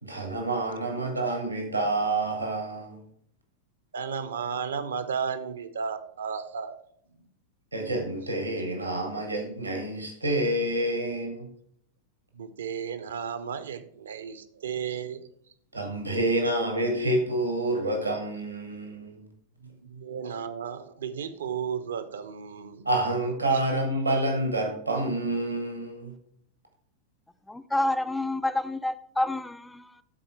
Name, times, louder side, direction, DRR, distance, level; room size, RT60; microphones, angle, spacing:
voice 1, 0.0-3.0 7.7-11.5 15.7-19.2 22.8-26.1, right 1 dB, 85° right, 1.5 m, -28 dB
voice 2, 3.9-6.7 12.3-15.2 19.6-22.9, right 7 dB, 65° right, 0.6 m, -34 dB
voice 3, 27.5-29.9, left 1 dB, 5° left, 0.4 m, -28 dB
11.5 x 4.3 x 4.5 m
figure-of-eight pair, 90°, 0 cm